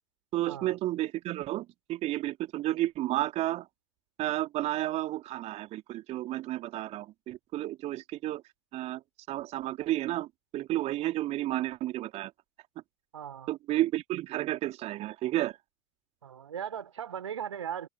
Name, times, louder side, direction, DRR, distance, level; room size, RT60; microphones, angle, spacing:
voice 1, 0.3-3.7 4.2-8.4 8.7-9.0 9.3-12.3 13.5-15.6, right 15 dB, 40° right, 3.1 m, -32 dB
voice 2, 13.1-13.5 16.2-17.9, right 9 dB, 75° right, 3.6 m, -38 dB
figure-of-eight pair, 75°, 16 cm